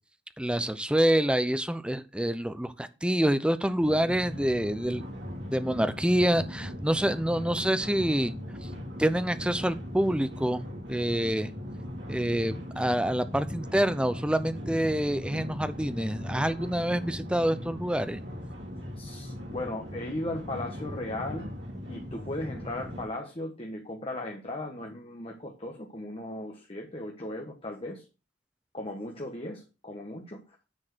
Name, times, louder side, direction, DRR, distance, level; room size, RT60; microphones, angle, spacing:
voice 1, 0.4-5.0 5.5-8.3 9.0-10.6 10.9-11.5 12.1-18.2, right 1 dB, 5° right, 12 dB, 0.6 m, -27 dB
sound 1, 3.8-23.0, left 1 dB, 80° right, 3.1 m, -39 dB
voice 2, 19.0-21.5 21.9-28.0 28.7-30.4, left 1 dB, 30° left, 1 dB, 1.3 m, -37 dB
9.8 x 4.5 x 6.2 m, 0.32 s
head